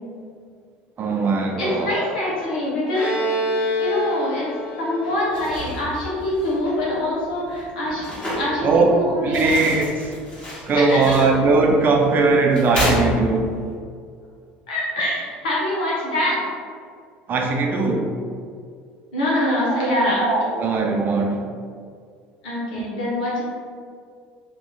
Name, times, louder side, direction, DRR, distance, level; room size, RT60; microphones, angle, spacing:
voice 1, 1.0-2.0 8.6-9.0 9.2-10.2 10.7-13.5 17.3-18.1 19.7-21.5 22.7-22.8, right 3 dB, 45° right, 2 dB, 0.6 m, -20 dB
voice 2, 1.6-3.1 3.6-4.5 4.8-8.0 8.3-9.6 10.7-11.1 14.7-16.4 19.1-20.2 22.4-23.4, left 1 dB, 90° left, -7 dB, 1.3 m, -24 dB
Bowed string instrument, 2.9-6.5, left 1 dB, 45° left, 1.4 m, -27 dB
sound 1, 5.2-13.7, equal, 20° left, 1.4 m, -31 dB
3.1 x 3.0 x 3.9 m, 2.2 s
hypercardioid pair, 80°, 5 cm